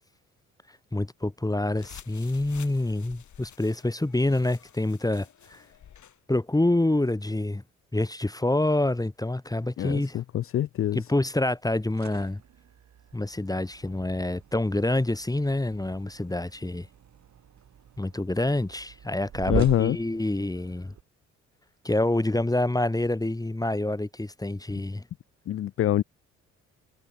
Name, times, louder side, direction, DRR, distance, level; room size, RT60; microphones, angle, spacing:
voice 1, 0.9-5.6 6.3-7.6 7.9-10.2 10.9-12.4 13.1-16.9 18.0-20.9 21.8-25.0, left 1 dB, 10° left, 1.6 m, -27 dB
sound 1, 1.7-6.2, left 9 dB, 55° left, 3.4 m, -50 dB
voice 2, 9.8-11.0 19.5-20.0 25.5-26.0, left 12 dB, 40° left, 0.5 m, -25 dB
sound 2, 11.8-21.0, right 9 dB, 50° right, 2.1 m, -41 dB
hypercardioid pair, 50°, 35 cm